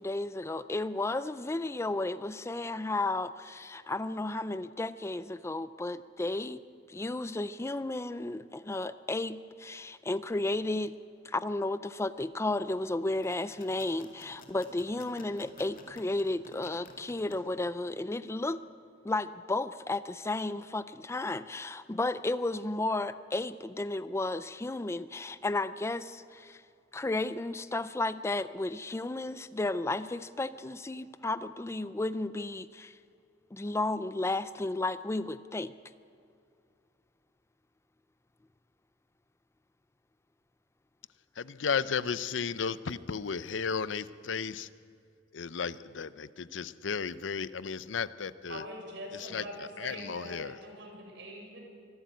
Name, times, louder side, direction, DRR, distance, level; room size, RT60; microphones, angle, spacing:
voice 1, 0.0-6.6 6.9-10.9 11.2-18.6 19.0-26.6 26.9-33.0 33.5-35.7, left 2 dB, 15° left, 14 dB, 0.4 m, -33 dB
sound 1, 13.1-17.3, left 3 dB, 50° left, 2.4 m, -53 dB
voice 2, 41.4-44.7 45.3-48.6 49.1-50.6, left 6 dB, 90° left, 16 dB, 0.6 m, -34 dB
voice 3, 48.5-51.6, right 1 dB, 70° right, 1 dB, 5.6 m, -43 dB
24.0 x 12.0 x 9.3 m, 2.4 s
head